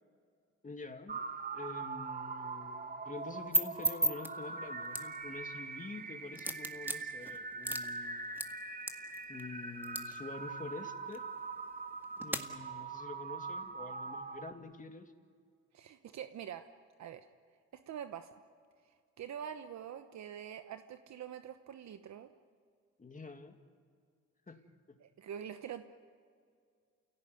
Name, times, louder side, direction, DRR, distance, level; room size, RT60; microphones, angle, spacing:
voice 1, 0.6-1.2 1.5-8.2 9.3-11.2 12.2-15.1 23.0-23.6 24.5-24.6 24.9-25.0, left 3 dB, 25° left, 6 dB, 2.2 m, -47 dB
sound 1, 1.1-14.5, right 4 dB, 30° right, 1.5 m, -42 dB
sound 2, 3.2-12.4, right 1 dB, 5° right, 2.0 m, -39 dB
voice 2, 15.7-16.6 17.0-17.3 17.9-18.3 18.8-22.3 25.0-25.8, right 9 dB, 65° right, 8 dB, 1.1 m, -45 dB
29.0 x 17.5 x 9.5 m, 2.2 s
cardioid pair, 90°, 30 cm